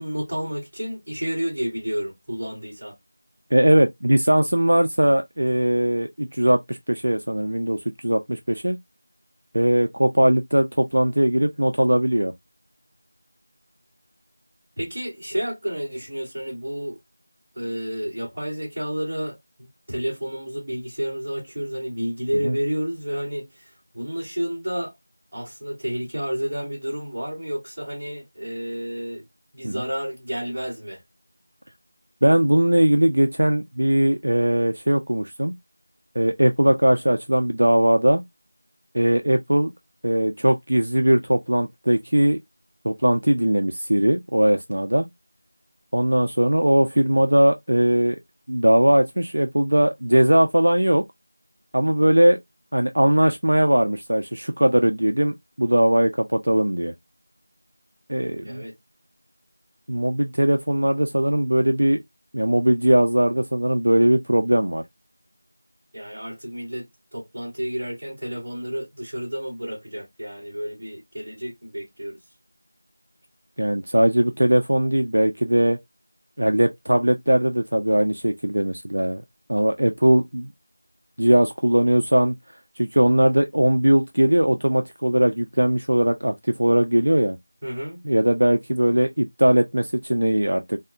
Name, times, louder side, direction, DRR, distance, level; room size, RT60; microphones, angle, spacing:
voice 1, 0.0-2.9 14.8-17.0 17.5-23.7 23.9-24.9 25.3-29.2 29.5-31.0 58.4-58.7 65.9-72.2 87.6-88.0, equal, 15° right, 1.2 m, -30 dB
voice 2, 3.5-8.8 9.5-12.3 22.4-22.6 29.6-29.8 32.2-35.5 36.2-38.2 38.9-39.7 40.0-42.4 42.8-45.1 45.9-48.2 48.5-51.0 51.7-52.4 52.7-56.9 58.1-58.6 59.9-62.0 62.3-64.8 73.6-75.8 76.4-79.2 79.5-80.5 81.2-82.3 82.8-87.4 88.0-90.8, right 1 dB, 55° right, 0.3 m, -20 dB
3.4 x 2.0 x 2.4 m
figure-of-eight pair, 180°, 0 cm